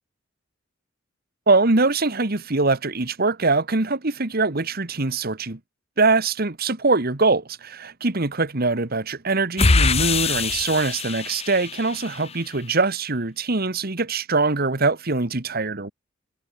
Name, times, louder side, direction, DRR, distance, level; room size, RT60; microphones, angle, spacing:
voice 1, 1.5-5.6 6.0-15.9, right 3 dB, 50° right, 1.6 m, -23 dB
sound 1, 9.6-12.3, left 4 dB, 30° left, 0.9 m, -23 dB
head